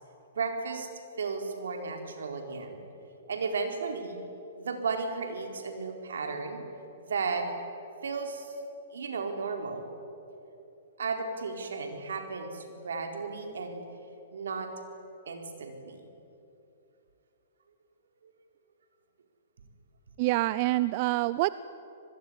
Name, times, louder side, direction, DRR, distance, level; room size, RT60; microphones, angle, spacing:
voice 1, 0.3-0.9 1.2-2.8 3.3-4.2 4.6-6.6 7.0-7.5 8.0-8.5 8.9-9.9 11.0-13.8 14.3-14.7 15.3-16.0 18.2-18.3, right 4 dB, 80° right, 4 dB, 4.4 m, -34 dB
voice 2, 20.2-21.5, right 19 dB, 45° right, 16 dB, 0.6 m, -26 dB
26.5 x 20.5 x 10.0 m, 2.9 s
hypercardioid pair, 130°, 0 cm